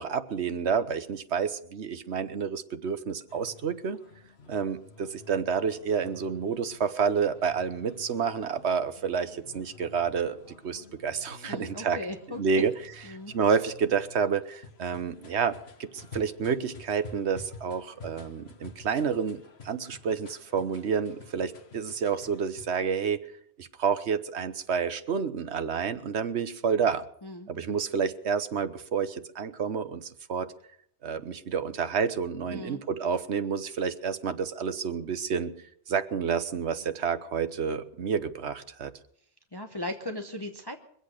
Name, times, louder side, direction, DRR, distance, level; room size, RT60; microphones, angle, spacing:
voice 1, 0.0-4.0 4.5-12.0 12.4-15.6 15.9-23.3 23.6-27.0 27.5-30.5 31.0-35.5 35.9-38.9, right 6 dB, 65° right, 11 dB, 1.2 m, -29 dB
sound 1, 3.3-22.7, left 4 dB, 60° left, 1.5 m, -51 dB
voice 2, 11.4-12.4 13.1-13.3 27.2-27.5 32.5-32.8 39.5-40.8, left 1 dB, 20° left, 5 dB, 0.9 m, -37 dB
23.0 x 8.1 x 6.4 m, 0.66 s
omnidirectional pair, 1.2 m